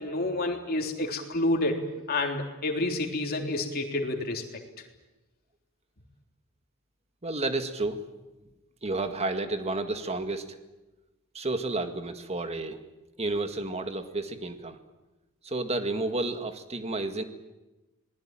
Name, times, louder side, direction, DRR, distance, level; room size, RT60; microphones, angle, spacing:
voice 1, 0.0-1.8 2.1-4.4, left 2 dB, 45° left, 2 dB, 3.5 m, -29 dB
voice 2, 7.2-8.1 8.8-10.6 11.3-12.8 13.2-14.8 15.4-17.2, right 2 dB, 30° right, 8 dB, 1.9 m, -31 dB
27.0 x 20.0 x 9.0 m, 1.1 s
head